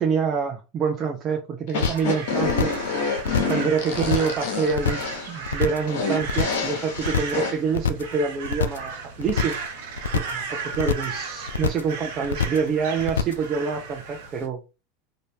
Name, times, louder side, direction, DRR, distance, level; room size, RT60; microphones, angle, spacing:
voice 1, 0.0-2.7 3.5-5.0 5.3-8.9 9.2-9.5 10.1-10.4 10.7-14.6, right 5 dB, 40° right, 0.6 m, -26 dB
sound 1, 1.7-7.5, left 4 dB, 70° left, 0.9 m, -28 dB
sound 2, 1.8-2.1 2.4-2.9 3.2-3.6 3.9-4.4 4.7-5.1 5.4-5.9 6.2-6.7 7.0-7.4 7.7-8.1 8.4-8.9 9.2-9.7 10.0-10.4 10.7-11.2 11.5-11.9 12.2-12.7 13.0-13.5, left 6 dB, 85° left, 0.3 m, -25 dB
Crow, 1.8-14.5, right 5 dB, 70° right, 0.9 m, -36 dB
2.7 x 2.6 x 3.4 m
hypercardioid pair, 90°, 0 cm